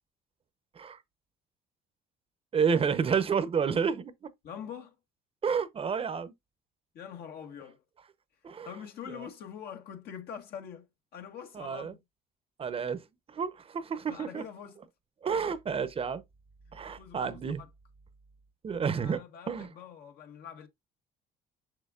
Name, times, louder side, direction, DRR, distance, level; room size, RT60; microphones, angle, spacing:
voice 1, 2.5-4.3 5.4-6.3 8.4-8.7 9.1-9.3 11.5-11.9 12.6-13.0 13.3-14.4 15.2-16.2 16.7-17.6 18.6-19.2 19.5-19.7, right 6 dB, 35° right, 0.7 m, -30 dB
voice 2, 4.4-4.9 6.9-7.8 8.6-12.0 14.1-14.8 17.0-17.7 18.7-20.7, left 8 dB, 70° left, 1.5 m, -44 dB
6.5 x 6.2 x 2.4 m
cardioid pair, 110°, 17 cm